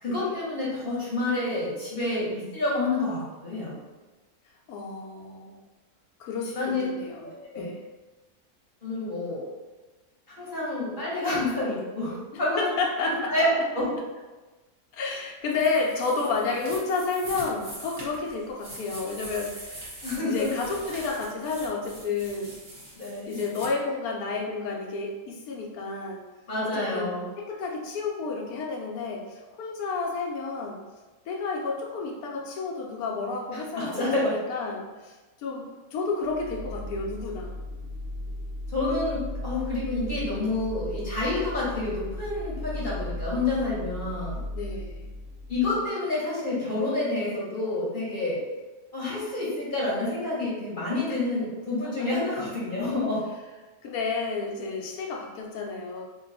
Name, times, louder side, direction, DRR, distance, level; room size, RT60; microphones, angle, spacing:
voice 1, 0.0-3.7 6.5-6.8 7.2-7.7 8.8-9.4 10.3-12.6 13.1-13.9 20.0-20.5 22.9-23.4 26.5-27.2 33.5-34.3 38.7-44.4 45.5-48.4 48.9-53.2, left 2 dB, 35° left, -7 dB, 1.1 m, -28 dB
voice 2, 4.7-5.6 6.2-7.8 12.3-13.5 14.9-22.5 23.3-26.2 26.6-30.8 31.3-37.5 44.5-45.1 52.0-52.1 53.8-56.0, left 4 dB, 80° left, 0 dB, 1.1 m, -31 dB
sound 1, 15.5-23.7, right 1 dB, 25° right, 0.8 m, -43 dB
sound 2, 36.2-45.9, left 1 dB, 65° right, 0.8 m, -36 dB
2.6 x 2.3 x 3.9 m, 1.2 s
omnidirectional pair, 1.6 m